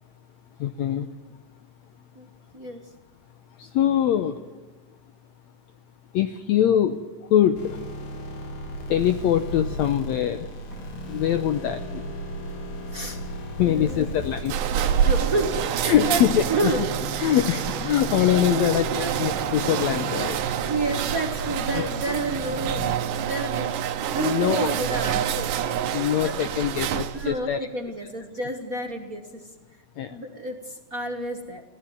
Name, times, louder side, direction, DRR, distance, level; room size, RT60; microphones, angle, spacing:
voice 1, 0.6-1.1 3.6-4.4 6.1-7.0 7.3-7.8 8.9-10.5 11.1-12.0 13.6-14.6 15.8-16.7 17.2-20.4 21.7-21.9 24.1-24.8 25.6-27.7 30.0-30.1, left 10 dB, 75° left, 9 dB, 1.7 m, -23 dB
sound 1, 7.5-22.9, equal, 55° left, 3.3 m, -36 dB
voice 2, 12.9-13.2 13.6-14.0 15.0-16.2 16.5-16.8 18.3-19.1 20.6-23.7 24.1-25.5 26.2-26.4 27.1-29.4 30.1-31.6, right 3 dB, 55° right, 4 dB, 0.9 m, -30 dB
sound 2, 13.9-27.4, right 9 dB, 75° right, 2.5 m, -27 dB
23.0 x 16.5 x 9.4 m, 1.3 s
omnidirectional pair, 3.9 m